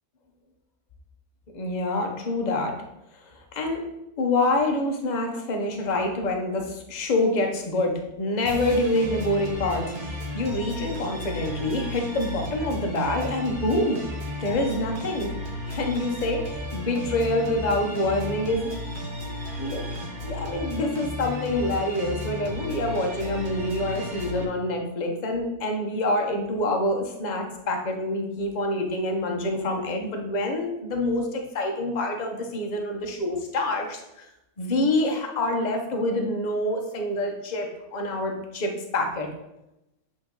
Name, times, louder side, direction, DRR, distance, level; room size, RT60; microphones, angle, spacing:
voice 1, 1.5-2.7 3.3-3.8 4.2-14.0 14.4-15.3 15.7-18.7 19.6-19.8 20.2-34.3 34.6-39.3, left 1 dB, 35° left, 3 dB, 0.8 m, -26 dB
sound 1, 8.5-24.4, left 1 dB, 40° right, 1.1 m, -34 dB
8.3 x 3.1 x 3.8 m, 0.89 s
omnidirectional pair, 1.6 m